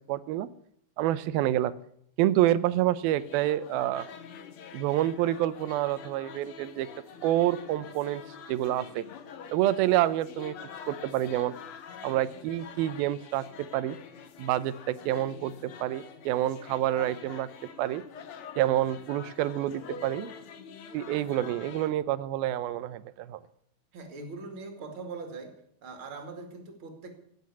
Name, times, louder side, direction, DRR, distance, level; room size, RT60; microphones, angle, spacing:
voice 1, 0.1-0.5 1.0-1.7 2.2-4.1 4.7-6.9 7.2-8.2 8.5-9.0 9.5-10.6 10.9-11.5 12.0-13.5 13.7-14.0 14.4-17.5 17.8-18.0 18.6-20.3 20.9-23.4, right 13 dB, 80° right, 16 dB, 2.6 m, -27 dB
sound 1, 3.2-21.9, left 7 dB, 75° left, 1.2 m, -46 dB
voice 2, 23.9-25.5 25.8-27.1, right 3 dB, 40° right, 5 dB, 2.7 m, -41 dB
17.0 x 7.7 x 8.4 m, 0.69 s
omnidirectional pair, 4.3 m